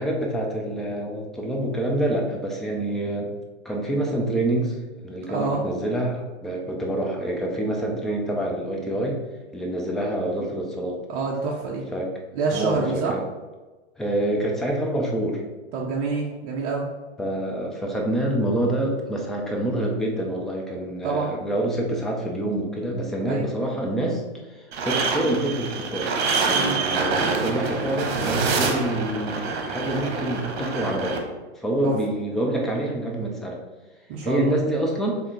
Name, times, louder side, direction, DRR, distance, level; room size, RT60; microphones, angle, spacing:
voice 1, 0.0-3.3 3.6-9.2 9.5-11.0 11.9-12.1 12.5-13.2 14.0-15.4 17.2-24.2 24.5-31.2 31.6-33.6 34.2-35.2, right 1 dB, ahead, -1 dB, 0.3 m, -27 dB
voice 2, 5.3-5.6 11.1-11.8 12.3-13.1 15.7-16.9 21.0-21.3 23.2-23.5 26.5-26.8 31.8-31.9 34.1-34.5, right 4 dB, 35° right, -2 dB, 0.7 m, -27 dB
sound 1, 24.7-31.2, right 4 dB, 60° right, 1.1 m, -26 dB
3.5 x 3.3 x 4.5 m, 1.2 s
hypercardioid pair, 115°, 35 cm